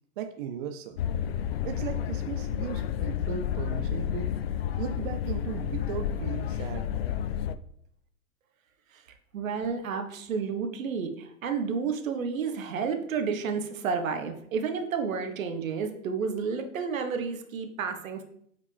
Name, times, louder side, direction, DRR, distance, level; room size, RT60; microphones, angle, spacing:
voice 1, 0.2-1.0 1.6-4.3 4.8-6.9, right 9 dB, 35° right, 7 dB, 0.5 m, -37 dB
sound 1, 1.0-7.6, left 9 dB, 45° left, 0.4 m, -31 dB
voice 2, 9.3-18.2, right 5 dB, 60° right, 6 dB, 1.3 m, -31 dB
8.4 x 4.9 x 3.3 m, 0.70 s
figure-of-eight pair, 110°, 45 cm